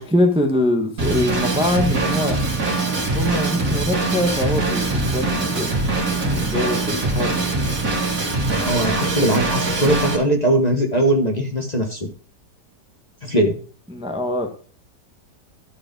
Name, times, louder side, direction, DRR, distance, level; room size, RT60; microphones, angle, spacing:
voice 1, 0.0-2.4 3.1-5.9 6.3-7.3 13.9-14.5, left 1 dB, 5° right, 1.0 m, -23 dB
Drum kit / Drum, 1.0-10.2, right 3 dB, 50° right, 2.8 m, -22 dB
voice 2, 8.7-12.0 13.2-13.6, right 1 dB, 25° left, 1.2 m, -20 dB
12.5 x 5.0 x 5.2 m
omnidirectional pair, 1.9 m